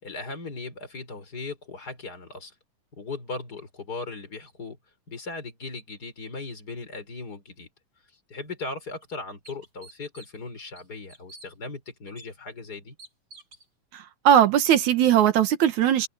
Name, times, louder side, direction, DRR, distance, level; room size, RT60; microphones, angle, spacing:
voice 1, 0.0-2.5 2.9-4.8 5.1-7.7 8.3-13.0, left 3 dB, 25° left, 4.9 m, -38 dB
sound 1, 8.4-8.5 9.0-9.1 9.4-10.4 10.8-11.5 12.2-12.3 13.0-13.7, right 2 dB, 30° right, 7.8 m, -48 dB
voice 2, 13.9-16.1, right 10 dB, 65° right, 2.5 m, -19 dB
omnidirectional pair, 3.9 m